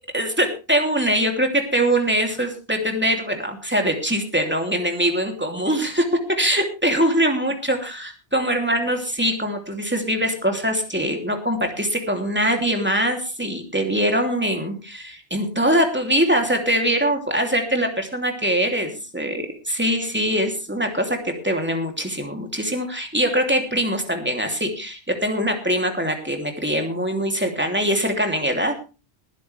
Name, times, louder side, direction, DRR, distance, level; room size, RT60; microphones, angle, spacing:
voice 1, 0.1-6.1 6.4-28.9, equal, 10° right, 4 dB, 3.0 m, -23 dB
20.0 x 10.5 x 3.4 m, 0.31 s
omnidirectional pair, 1.1 m